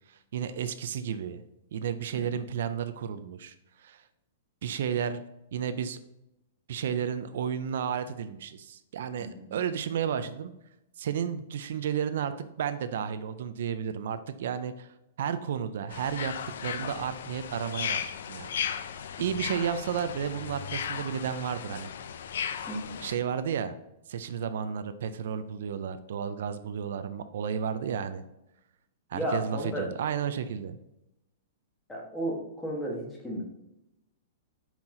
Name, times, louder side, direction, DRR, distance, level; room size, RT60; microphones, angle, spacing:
voice 1, 0.1-1.4 1.7-3.5 3.8-4.0 4.6-5.2 5.5-6.0 6.7-10.5 11.0-12.3 12.6-16.3 16.6-18.6 19.2-21.9 23.0-23.8 24.1-28.2 29.1-30.8, right 8 dB, 65° right, 11 dB, 0.4 m, -32 dB
voice 2, 2.1-2.5 9.2-9.5 22.7-23.0 29.1-29.9 31.9-33.4, right 1 dB, 5° left, -3 dB, 1.3 m, -34 dB
sound 1, 15.9-23.2, left 8 dB, 75° left, 0.4 m, -36 dB
5.6 x 4.4 x 3.7 m, 0.87 s
hypercardioid pair, 160°, 0 cm